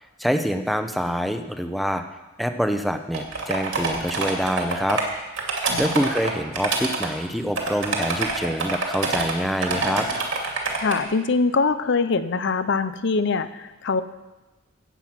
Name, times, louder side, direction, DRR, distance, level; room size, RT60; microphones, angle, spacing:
voice 1, 0.2-2.0 2.4-5.0 5.8-10.1, equal, ahead, 7 dB, 0.7 m, -25 dB
sound 1, 3.1-5.0 5.4-7.1 7.6-9.3 9.6-11.0, right 3 dB, 70° right, 2.4 m, -26 dB
voice 2, 5.7-6.0 10.8-14.0, left 4 dB, 60° left, 13 dB, 0.6 m, -23 dB
16.0 x 7.9 x 6.0 m, 1.1 s
head